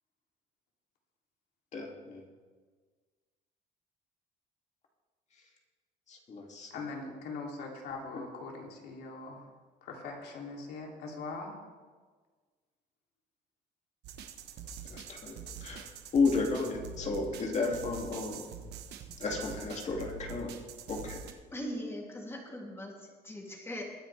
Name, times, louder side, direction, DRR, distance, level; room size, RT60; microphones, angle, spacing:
voice 1, 1.7-2.2 6.1-6.7 8.1-8.2 14.9-15.8 16.1-18.4 19.2-20.5 20.9-21.3, left 4 dB, 45° left, 0 dB, 2.5 m, -33 dB
voice 2, 6.7-9.5 9.8-11.5, left 3 dB, 75° left, 0 dB, 3.0 m, -41 dB
sound 1, 14.0-21.3, right 6 dB, 80° right, 1.2 m, -45 dB
voice 3, 21.5-23.8, equal, 15° left, -1 dB, 2.9 m, -40 dB
22.0 x 9.9 x 3.4 m, 1.5 s
cardioid pair, 110°, 17 cm